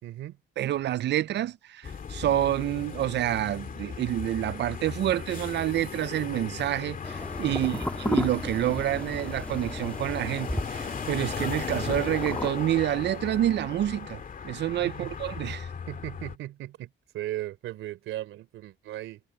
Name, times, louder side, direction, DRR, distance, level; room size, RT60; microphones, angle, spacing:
voice 1, 0.0-0.4 7.5-7.8 14.8-15.1 15.9-19.2, right 14 dB, 85° right, 3.6 m, -37 dB
voice 2, 0.6-15.7, right 12 dB, 60° right, 0.5 m, -28 dB
sound 1, 1.8-16.4, left 6 dB, 45° left, 2.3 m, -37 dB
sound 2, 7.0-12.5, left 1 dB, 5° left, 1.9 m, -34 dB
cardioid pair, 90°, 20 cm